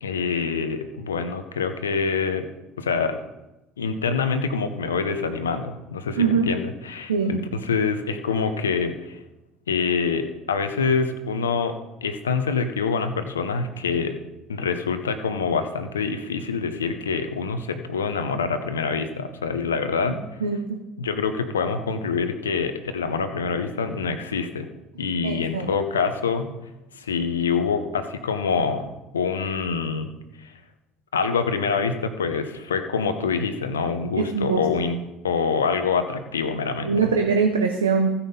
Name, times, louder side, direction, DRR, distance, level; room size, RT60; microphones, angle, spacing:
voice 1, 0.0-2.5 2.8-3.2 3.8-9.2 9.7-11.7 12.0-14.2 14.5-20.2 21.0-24.7 25.0-26.5 27.0-28.9 29.1-30.1 30.4-30.5 31.1-35.0 35.2-37.1, left 5 dB, 80° left, 9 dB, 0.8 m, -25 dB
voice 2, 6.2-6.5 7.1-7.3 20.4-20.8 25.2-25.7 34.2-34.6 36.8-38.1, right 5 dB, 80° right, 4 dB, 0.7 m, -22 dB
15.5 x 5.6 x 4.1 m, 0.98 s
figure-of-eight pair, 60°, 0 cm